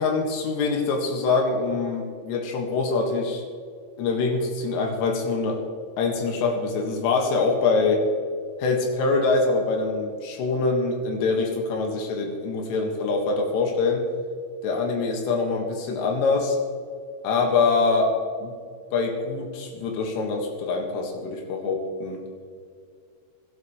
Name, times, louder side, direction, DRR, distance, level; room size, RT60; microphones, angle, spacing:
voice 1, 0.0-3.4 4.0-5.6 6.0-8.0 8.6-14.1 14.6-16.6 17.2-18.1 18.4-18.5 18.9-22.2, left 4 dB, 85° left, 1 dB, 4.3 m, -24 dB
23.5 x 12.0 x 3.3 m, 2.2 s
omnidirectional pair, 5.7 m